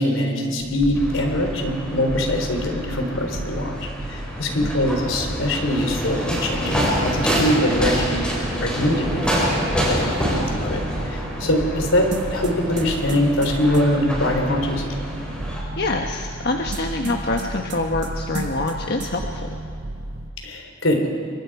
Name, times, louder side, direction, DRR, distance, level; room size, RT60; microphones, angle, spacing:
voice 1, 0.0-9.6 9.9-14.9 20.4-21.1, left 1 dB, 80° left, 3 dB, 3.8 m, -23 dB
sound 1, 0.6-20.3, right 1 dB, 80° right, 1.2 m, -33 dB
sound 2, 1.0-15.6, equal, 5° left, 5.5 m, -27 dB
sound 3, 12.1-13.8 16.7-18.1 18.3-18.7 19.0-19.1, right 3 dB, 60° right, 1.7 m, -34 dB
voice 2, 15.8-19.5, left 2 dB, 55° left, 2 dB, 1.3 m, -26 dB
27.5 x 24.0 x 4.9 m, 2.6 s
head